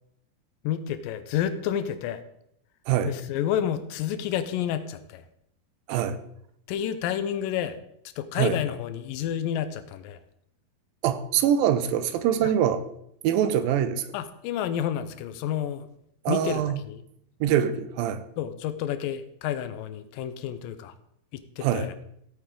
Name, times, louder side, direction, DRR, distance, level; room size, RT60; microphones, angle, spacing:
voice 1, 0.6-2.2 3.1-5.2 6.7-7.8 8.2-10.2 12.4-12.5 14.1-15.9 16.3-17.0 18.4-20.9 21.3-21.9, left 10 dB, 75° left, 11 dB, 2.3 m, -30 dB
voice 2, 11.0-12.8 13.2-14.1 16.3-16.8 17.4-18.2 21.6-21.9, right 9 dB, 75° right, 11 dB, 2.4 m, -24 dB
16.0 x 8.6 x 3.8 m, 0.74 s
omnidirectional pair, 4.3 m